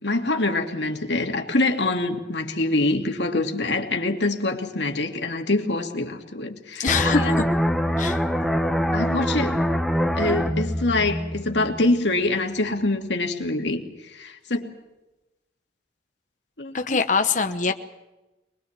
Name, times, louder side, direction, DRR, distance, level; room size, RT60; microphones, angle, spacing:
voice 1, 0.0-7.4 8.9-9.6 10.1-13.8 14.1-14.7 16.6-17.0, left 2 dB, 75° left, 4 dB, 2.5 m, -25 dB
voice 2, 6.8-7.4 8.0-8.2 16.7-17.7, left 5 dB, 45° left, 7 dB, 1.0 m, -23 dB
sound 1, 6.9-12.3 12.6-12.8, equal, ahead, 1.2 m, -24 dB
23.5 x 21.5 x 7.4 m, 1.0 s
head